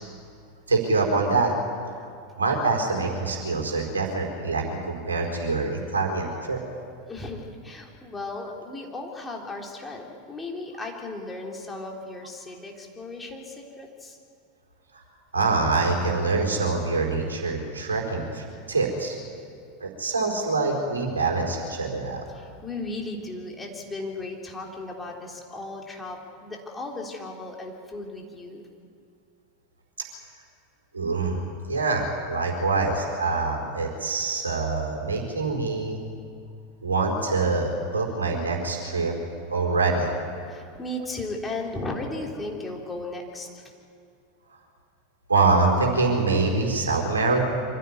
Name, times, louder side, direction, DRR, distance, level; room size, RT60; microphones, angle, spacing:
voice 1, 0.7-1.5 2.4-6.6 15.3-19.2 19.8-22.2 30.9-31.4 31.7-36.0 36.8-39.1 39.5-40.1 45.3-47.4, right 3 dB, 80° right, 0 dB, 4.3 m, -25 dB
voice 2, 7.1-14.2 19.3-19.5 22.3-28.6 40.5-43.7, left 2 dB, 15° left, 0 dB, 3.6 m, -36 dB
25.0 x 16.0 x 9.6 m, 2.3 s
figure-of-eight pair, 85°, 0 cm